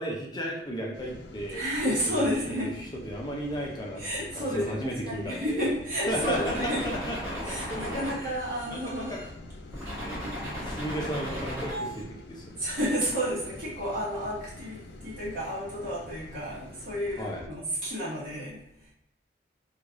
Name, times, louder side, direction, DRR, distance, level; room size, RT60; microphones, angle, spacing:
voice 1, 0.0-1.6 2.0-5.6 6.1-8.3 8.7-9.2 10.0-12.6 17.2-17.4, equal, 25° left, -2 dB, 0.6 m, -35 dB
sound 1, 0.9-17.5, left 2 dB, 75° left, 0.4 m, -47 dB
voice 2, 1.5-2.7 4.0-6.9 7.4-9.2 12.6-18.9, equal, 50° right, -8 dB, 1.2 m, -31 dB
sound 2, 6.1-9.3 9.7-12.0, equal, 15° right, 1.3 m, -36 dB
3.1 x 2.4 x 3.6 m, 0.81 s
head